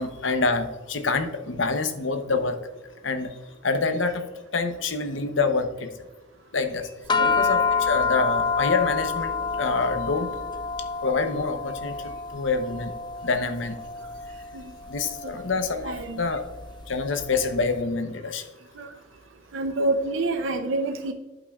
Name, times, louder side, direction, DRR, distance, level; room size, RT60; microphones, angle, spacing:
voice 1, 0.0-2.6 3.0-3.3 3.6-4.2 4.5-5.9 6.5-6.9 7.2-9.3 9.6-10.3 11.0-12.9 13.2-13.8 14.9-16.4 16.9-18.5, left 4 dB, 70° left, 8 dB, 0.8 m, -26 dB
sound 1, 7.1-17.6, left 5 dB, 25° left, 0.4 m, -28 dB
voice 2, 15.8-16.4 18.8-18.9 19.5-21.1, right 2 dB, 80° right, 5 dB, 0.6 m, -28 dB
12.0 x 5.5 x 2.4 m, 1.1 s
head